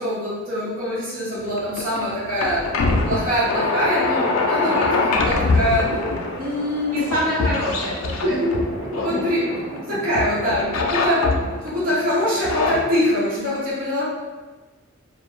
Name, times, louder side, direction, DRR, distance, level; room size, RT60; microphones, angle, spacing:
voice 1, 0.0-2.6 3.1-6.1 6.4-7.0 8.2-8.5 8.9-11.2 11.6-14.1, equal, 40° right, -11 dB, 0.7 m, -24 dB
sound 1, 1.4-9.8 10.1-11.8 12.3-12.8, left 3 dB, 75° left, 0.3 m, -24 dB
sound 2, 2.5-13.0, equal, ahead, 0.8 m, -36 dB
voice 2, 6.9-8.4, equal, 85° right, -9 dB, 1.2 m, -25 dB
2.4 x 2.0 x 3.0 m, 1.2 s
head